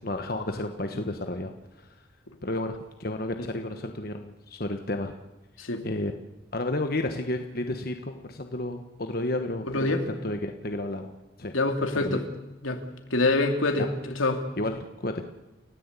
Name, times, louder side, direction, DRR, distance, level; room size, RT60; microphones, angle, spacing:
voice 1, 0.0-1.5 1.8-1.9 2.4-5.1 5.8-6.1 6.5-11.1 11.4-11.5 12.0-12.2 13.8-13.9 14.6-15.3, left 1 dB, 50° left, 5 dB, 1.3 m, -32 dB
voice 2, 9.6-10.0 11.5-12.2 12.6-12.8 13.1-14.5, left 2 dB, 85° left, 5 dB, 3.0 m, -25 dB
29.5 x 16.5 x 8.4 m, 1.1 s
head